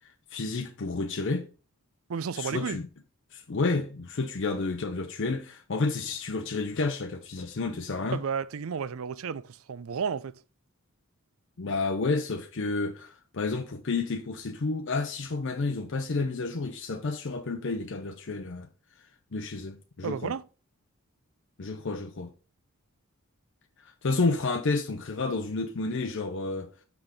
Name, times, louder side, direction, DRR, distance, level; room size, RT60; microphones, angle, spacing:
voice 1, 0.3-1.5 2.3-2.9 3.3-8.2 11.6-18.7 19.3-20.3 21.6-22.3 23.8-26.7, left 3 dB, 55° left, 0.6 m, -30 dB
voice 2, 2.1-2.8 8.0-10.3 20.0-20.4, right 6 dB, 70° right, 0.4 m, -32 dB
6.0 x 5.8 x 4.9 m
head